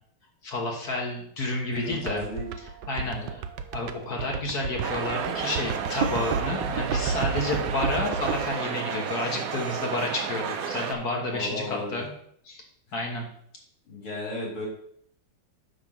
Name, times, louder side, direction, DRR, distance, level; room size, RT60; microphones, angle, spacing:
voice 1, 0.4-2.2 2.9-3.4 3.7-12.1 12.5-12.6 12.9-13.3, left 2 dB, 50° left, 0 dB, 1.8 m, -30 dB
voice 2, 1.7-2.5 3.0-3.3 11.3-12.0 13.9-14.7, left 2 dB, 80° left, -3 dB, 3.8 m, -34 dB
sound 1, 1.8-8.5, right 6 dB, 70° right, 1.1 m, -31 dB
sound 2, 4.8-10.9, right 7 dB, 85° right, 0.7 m, -32 dB
9.4 x 3.8 x 6.2 m, 0.67 s
omnidirectional pair, 2.3 m